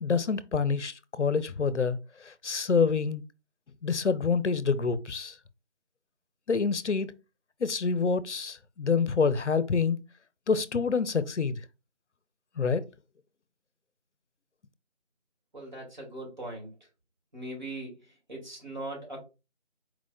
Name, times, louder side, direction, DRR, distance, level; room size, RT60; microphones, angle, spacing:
voice 1, 0.0-3.2 3.8-5.4 6.5-7.1 7.6-10.0 10.5-11.6 12.6-12.9, left 5 dB, 80° left, 0.6 m, -27 dB
voice 2, 15.5-16.7 17.3-18.0 18.3-19.2, right 1 dB, 40° right, 2.2 m, -39 dB
4.5 x 4.0 x 2.2 m
figure-of-eight pair, 165°, 35 cm